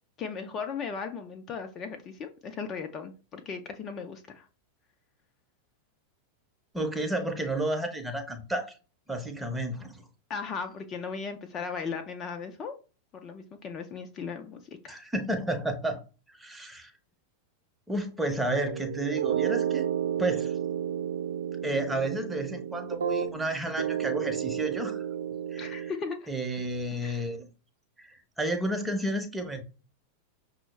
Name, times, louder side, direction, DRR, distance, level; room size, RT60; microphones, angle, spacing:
voice 1, 0.2-4.5 10.3-12.8 13.1-15.0 25.6-26.3 27.0-27.3, left 5 dB, 30° left, 6 dB, 0.4 m, -37 dB
voice 2, 6.7-8.7 9.1-10.0 14.9-16.0 16.3-16.9 17.9-19.9 20.2-20.6 21.6-25.1 25.5-25.9 26.3-27.5 28.0-29.6, right 1 dB, 5° right, 5 dB, 0.8 m, -31 dB
sound 1, 18.5-23.5 23.8-25.9, right 9 dB, 65° right, 0.4 m, -31 dB
5.9 x 2.0 x 3.2 m, 0.35 s
figure-of-eight pair, 90°, 0 cm